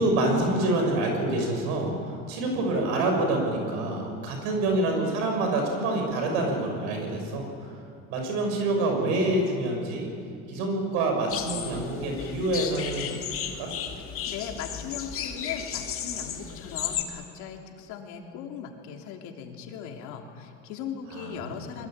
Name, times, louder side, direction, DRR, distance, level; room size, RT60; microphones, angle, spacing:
voice 1, 0.0-7.7 8.1-10.1 10.5-13.2 13.6-13.7 21.1-21.6, right 2 dB, 80° right, 2 dB, 6.6 m, -27 dB
sound 1, 11.3-17.0, left 9 dB, 45° left, 2.6 m, -34 dB
voice 2, 14.3-21.9, left 7 dB, 70° left, 2 dB, 3.3 m, -38 dB
23.0 x 22.0 x 8.9 m, 2.4 s
supercardioid pair, 110°, 30 cm